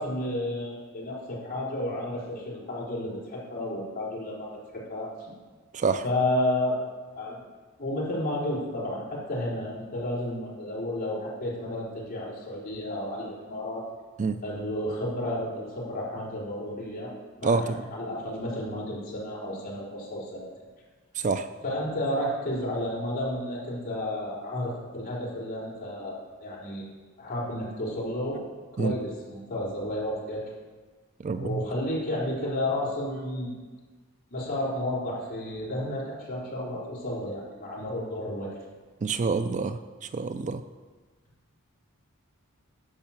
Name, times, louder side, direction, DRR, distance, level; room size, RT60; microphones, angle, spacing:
voice 1, 0.0-5.3 6.0-6.9 7.2-7.4 7.8-13.8 14.4-17.1 17.4-20.5 21.6-26.9 27.2-28.4 28.8-30.4 31.3-33.5 34.3-38.5, left 1 dB, 40° left, -6 dB, 4.0 m, -32 dB
voice 2, 17.4-17.8 21.2-21.5 28.8-28.9 31.2-31.6 39.0-40.6, right 4 dB, 35° right, 10 dB, 0.4 m, -27 dB
10.5 x 6.4 x 7.2 m, 1.4 s
head